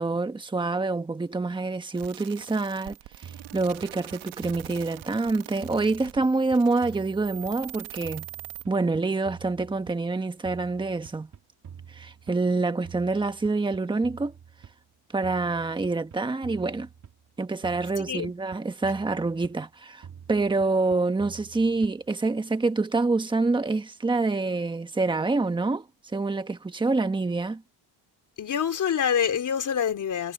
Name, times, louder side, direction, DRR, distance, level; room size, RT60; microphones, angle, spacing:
voice 1, 0.0-8.3 8.7-11.3 11.9-14.3 15.1-16.9 17.4-25.9 26.1-27.6, right 3 dB, 10° right, 1.3 m, -26 dB
sound 1, 1.9-8.6, right 18 dB, 80° right, 1.5 m, -44 dB
sound 2, 3.2-5.3 5.6-7.8 8.0-10.2 10.4-12.5 12.8-14.8 15.2-17.3 17.6-19.7 20.0-22.2, right 7 dB, 40° right, 2.9 m, -47 dB
voice 2, 28.4-30.3, left 8 dB, 40° left, 4.1 m, -26 dB
cardioid pair, 140°, 47 cm